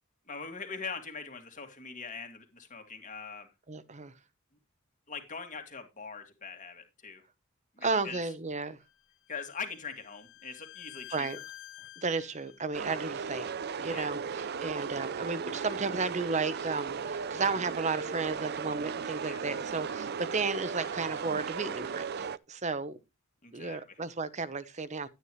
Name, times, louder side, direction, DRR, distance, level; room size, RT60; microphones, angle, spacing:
voice 1, 0.3-3.5 5.1-7.2 7.8-8.2 9.3-11.3 13.9-14.1 19.2-19.4 23.4-23.8, left 5 dB, 35° left, 2.3 m, -42 dB
voice 2, 3.7-4.1 7.8-8.8 11.1-11.4 12.0-23.0 23.5-25.1, right 4 dB, 35° right, 0.9 m, -33 dB
Bowed string instrument, 8.9-12.7, left 15 dB, 65° left, 1.5 m, -50 dB
sound 1, 12.7-22.4, right 6 dB, 50° right, 0.5 m, -36 dB
11.5 x 9.6 x 3.1 m
head